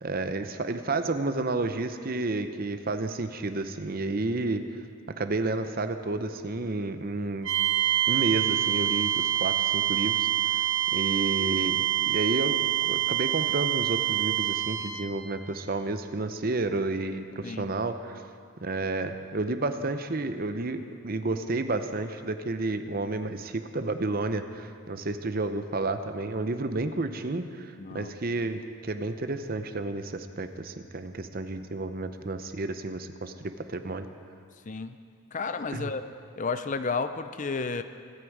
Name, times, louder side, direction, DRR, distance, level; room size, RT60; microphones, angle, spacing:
voice 1, 0.0-4.6 5.1-7.5 8.1-10.6 10.9-18.2 18.6-34.1 35.7-35.9, right 2 dB, 45° right, 9 dB, 0.7 m, -31 dB
sound 1, 7.4-15.2, right 13 dB, 60° right, 1.1 m, -26 dB
voice 2, 27.8-28.1 34.7-35.0 35.3-36.0 36.4-37.8, left 4 dB, 35° left, 10 dB, 0.5 m, -32 dB
23.5 x 9.9 x 4.8 m, 2.2 s
head